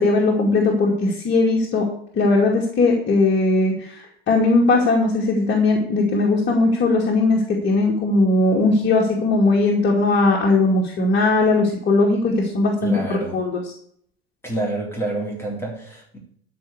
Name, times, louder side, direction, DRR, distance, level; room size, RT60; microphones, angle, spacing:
voice 1, 0.0-1.9 2.1-13.6, left 3 dB, 35° left, -1 dB, 2.4 m, -19 dB
voice 2, 12.8-13.4 14.4-16.2, right 2 dB, 10° left, -3 dB, 3.8 m, -28 dB
13.0 x 4.7 x 8.2 m, 0.63 s
figure-of-eight pair, 75°, 31 cm